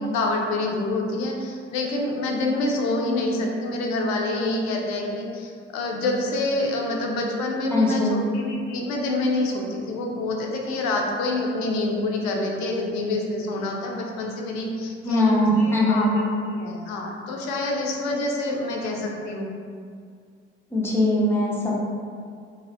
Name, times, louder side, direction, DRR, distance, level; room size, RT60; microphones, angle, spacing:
voice 1, 0.1-19.5, left 2 dB, 55° left, 0 dB, 0.5 m, -27 dB
voice 2, 7.7-8.2 15.0-16.1 20.7-21.7, left 1 dB, 5° left, -5 dB, 0.6 m, -21 dB
2.6 x 2.1 x 2.5 m, 2.2 s
figure-of-eight pair, 45°, 32 cm